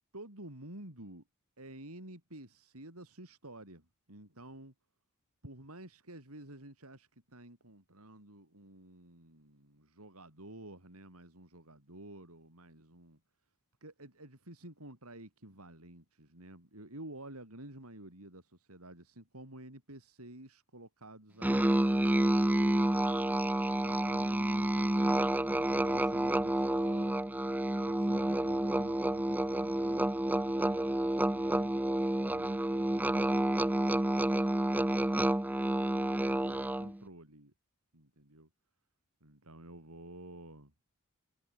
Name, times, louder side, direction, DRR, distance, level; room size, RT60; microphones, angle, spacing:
voice 1, 0.1-1.2 1.6-4.7 5.4-13.2 13.8-22.9 23.7-27.1 27.9-31.7 32.2-35.5 35.9-37.5 37.9-38.5 39.2-40.7, right 1 dB, 75° right, 7.6 m, -51 dB
Musical instrument, 21.4-37.0, right 1 dB, 10° right, 0.5 m, -29 dB
head